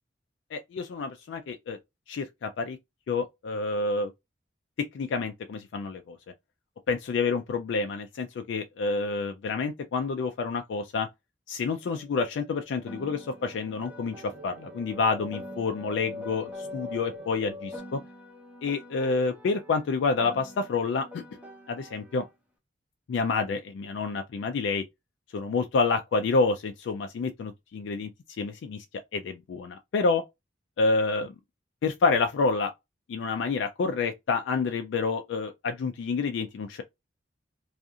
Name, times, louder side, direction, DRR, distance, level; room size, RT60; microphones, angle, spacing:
voice 1, 0.5-1.8 2.1-2.8 3.1-4.1 4.8-6.2 6.9-11.1 11.5-18.0 18.6-21.2 21.7-22.2 23.1-24.8 25.3-28.1 28.4-28.8 29.1-30.2 30.8-31.4 31.8-32.7 33.1-36.8, left 4 dB, 70° left, 0.3 m, -28 dB
sound 1, 11.9-17.8, left 2 dB, 65° right, 0.8 m, -42 dB
Piano, 12.9-17.3 17.7-22.3, equal, 10° right, 0.7 m, -48 dB
2.4 x 2.4 x 2.7 m
head